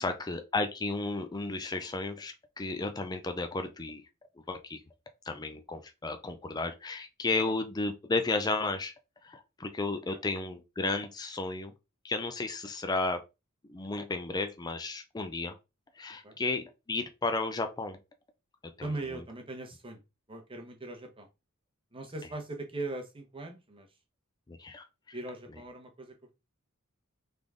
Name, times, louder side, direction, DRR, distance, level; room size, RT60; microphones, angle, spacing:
voice 1, 0.0-4.0 4.5-4.8 5.3-8.9 9.2-11.7 12.0-13.2 13.6-15.5 16.0-18.0 18.8-18.9 24.5-25.2, left 3 dB, 20° left, 0.4 m, -33 dB
voice 2, 18.8-20.0 20.3-21.3 21.9-23.9 25.1-26.3, right 2 dB, 25° right, 1.0 m, -40 dB
3.8 x 3.4 x 3.6 m
head